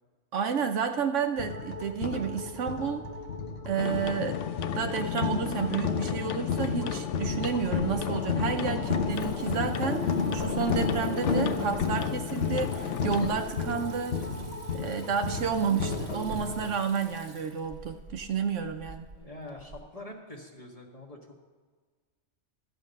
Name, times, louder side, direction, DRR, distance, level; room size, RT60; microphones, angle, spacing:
voice 1, 0.3-3.1 3.6-4.4 4.7-14.2 14.7-19.1, right 6 dB, 80° right, 6 dB, 1.0 m, -31 dB
sound 1, 1.4-16.7, left 4 dB, 60° left, 1.2 m, -32 dB
sound 2, 3.8-13.4, left 10 dB, 80° left, 0.9 m, -35 dB
Water tap faucet / Sink (filling or washing), 7.2-19.8, right 2 dB, 45° right, 2.2 m, -49 dB
voice 2, 19.2-21.2, left 1 dB, 30° left, 0 dB, 1.7 m, -44 dB
13.0 x 8.0 x 5.3 m, 1.5 s
omnidirectional pair, 1.2 m